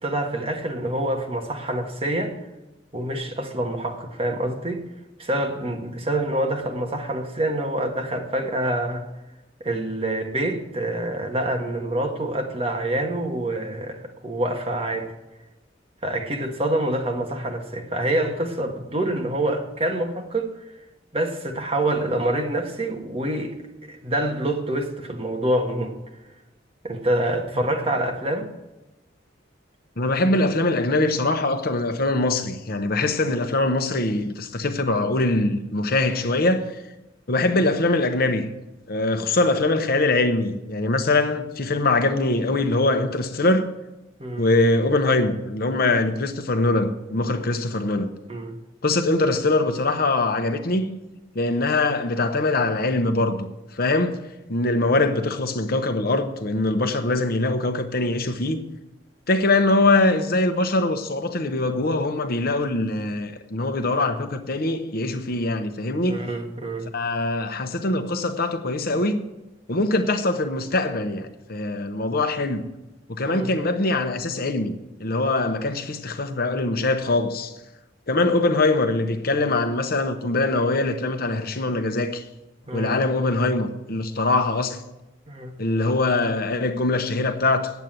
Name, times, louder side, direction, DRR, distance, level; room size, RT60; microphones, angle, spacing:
voice 1, 0.0-2.4 2.9-4.9 5.2-9.1 9.6-15.1 16.0-20.5 21.1-26.0 26.8-28.5 44.2-44.5 48.3-48.5 66.0-66.9 73.3-73.5 82.7-83.0 85.3-85.5, right 1 dB, 30° right, 1.4 m, -26 dB
voice 2, 30.0-36.6 37.3-38.5 38.9-43.7 44.4-48.1 48.8-51.0 51.3-53.5 53.7-54.2 54.5-58.6 59.3-66.2 66.9-69.2 69.7-72.7 73.1-74.7 75.0-77.5 78.1-82.2 82.7-84.8 85.6-87.7, left 2 dB, 55° left, 0.9 m, -22 dB
9.2 x 8.1 x 9.1 m
head